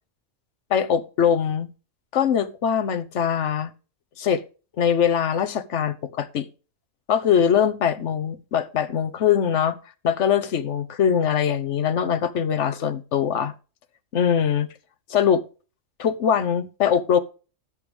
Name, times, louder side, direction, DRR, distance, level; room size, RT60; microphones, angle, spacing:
voice 1, 0.7-1.7 2.1-3.7 4.2-4.4 4.8-6.5 7.1-9.8 10.0-13.5 14.1-14.7 15.1-15.4 16.0-17.2, left 8 dB, 65° left, 1.2 m, -22 dB
17.0 x 6.5 x 3.3 m
omnidirectional pair, 1.3 m